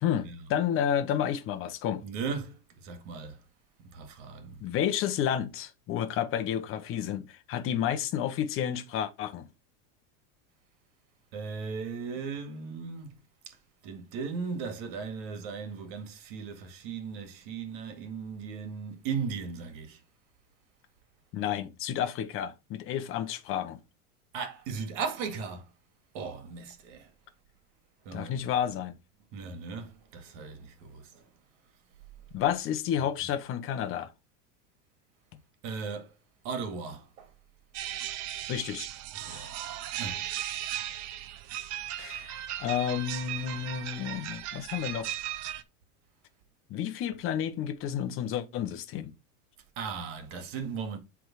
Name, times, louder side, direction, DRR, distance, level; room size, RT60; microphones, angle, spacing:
voice 1, 0.0-2.0 4.6-9.5 21.3-23.8 28.1-28.9 32.3-34.1 38.5-38.9 39.3-39.5 42.0-45.1 46.7-49.1, left 9 dB, 30° left, 0.9 m, -31 dB
voice 2, 2.0-3.4 3.9-4.6 11.3-13.2 13.8-20.0 24.3-25.7 26.1-27.1 28.1-28.4 29.3-31.2 35.6-36.1 36.4-37.3 39.2-39.5 40.0-40.3 49.8-51.0, right 5 dB, 60° right, 2.0 m, -37 dB
sound 1, 37.7-45.6, right 12 dB, 40° right, 0.7 m, -37 dB
7.7 x 3.6 x 4.8 m
supercardioid pair, 150°, 41 cm